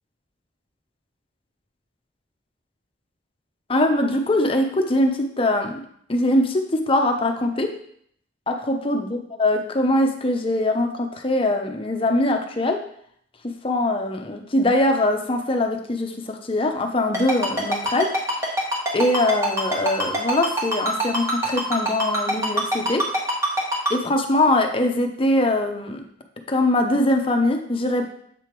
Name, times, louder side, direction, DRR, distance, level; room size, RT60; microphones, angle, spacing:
voice 1, 3.7-5.7 6.1-7.7 8.5-12.8 13.4-18.1 18.9-23.0 23.9-26.0 26.5-28.1, left 1 dB, 30° left, 4 dB, 0.7 m, -22 dB
Ringtone, 17.1-23.9, right 1 dB, 15° right, 1.3 m, -23 dB
7.5 x 3.4 x 4.5 m, 0.66 s
head